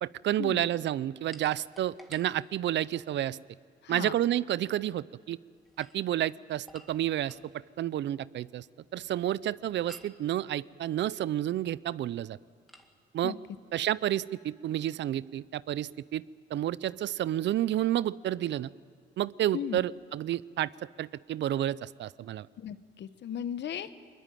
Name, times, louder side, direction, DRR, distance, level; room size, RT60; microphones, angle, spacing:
voice 1, 0.0-3.4 3.9-5.4 5.8-7.4 7.8-8.6 8.9-12.4 13.1-13.3 13.7-16.2 16.5-18.7 19.2-20.7 21.0-22.5, right 12 dB, 65° right, 20 dB, 0.5 m, -30 dB
sound 1, 1.3-3.1 5.6-7.5 9.9-10.2 12.7-12.9, equal, ahead, 2.1 m, -54 dB
voice 2, 22.6-23.9, left 9 dB, 65° left, 13 dB, 1.1 m, -36 dB
22.0 x 21.5 x 9.2 m, 2.2 s
cardioid pair, 90°, 20 cm